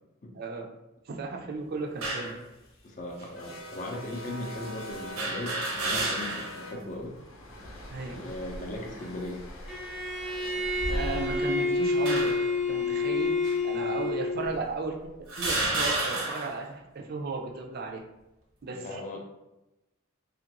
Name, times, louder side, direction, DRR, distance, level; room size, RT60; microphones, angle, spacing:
voice 1, 0.3-0.7 1.1-2.4 6.7-6.8 7.9-8.3 10.4-10.6 10.9-12.4 12.7-13.4 13.6-15.0 15.4-18.0 18.6-19.2, right 4 dB, 50° right, 2 dB, 0.4 m, -35 dB
sound 1, 2.0-2.4 3.2-3.3 5.2-6.6 7.0-7.1 8.3-8.7 9.4-9.7 10.6-11.4 12.1-12.6 13.4-13.6 14.4-14.5 15.3-16.6, right 2 dB, 80° right, 0.8 m, -31 dB
sound 2, 2.3-14.3, equal, 80° left, 0.7 m, -46 dB
voice 2, 2.8-7.2 8.1-9.4 14.0-14.1 14.4-14.6 18.8-19.2, left 2 dB, 35° left, 0 dB, 0.5 m, -38 dB
Bowed string instrument, 9.7-14.5, left 3 dB, ahead, 0.6 m, -28 dB
3.0 x 2.5 x 2.9 m, 0.95 s
head